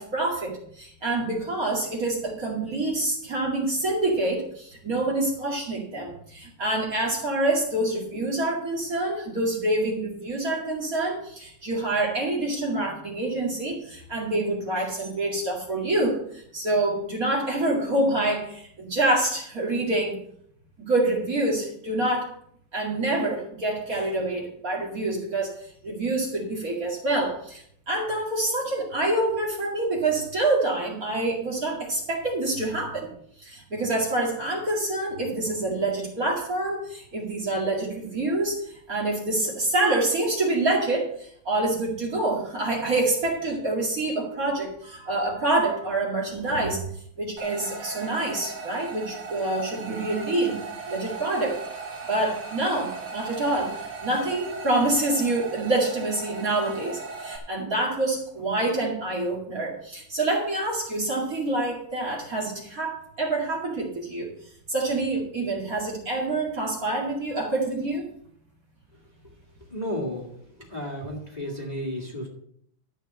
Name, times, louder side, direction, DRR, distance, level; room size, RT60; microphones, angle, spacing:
voice 1, 0.0-20.2 20.8-22.3 22.7-33.1 33.4-46.8 47.2-50.6 50.9-51.6 52.1-64.3 64.7-68.1, right 2 dB, 40° right, -2 dB, 2.7 m, -26 dB
sound 1, 47.4-57.4, right 4 dB, 75° right, 2.5 m, -38 dB
voice 2, 69.7-70.3 70.6-72.3, equal, 20° left, -1 dB, 2.4 m, -32 dB
13.0 x 4.8 x 7.6 m, 0.67 s
omnidirectional pair, 2.4 m